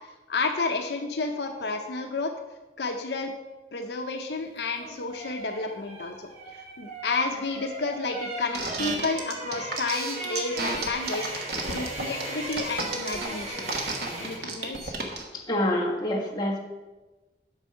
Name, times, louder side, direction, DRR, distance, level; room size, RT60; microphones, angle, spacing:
voice 1, 0.3-2.3 2.8-3.3 3.7-11.2 11.7-13.9 14.2-14.9, left 3 dB, 70° left, 4 dB, 0.7 m, -31 dB
sound 1, 4.6-14.6 14.8-15.0, right 2 dB, 40° right, 3.3 m, -38 dB
sound 2, 8.5-15.2, right 3 dB, 60° right, 1.3 m, -32 dB
voice 2, 15.3-16.6, left 1 dB, 25° left, -3 dB, 1.4 m, -27 dB
8.1 x 6.2 x 5.6 m, 1.1 s
head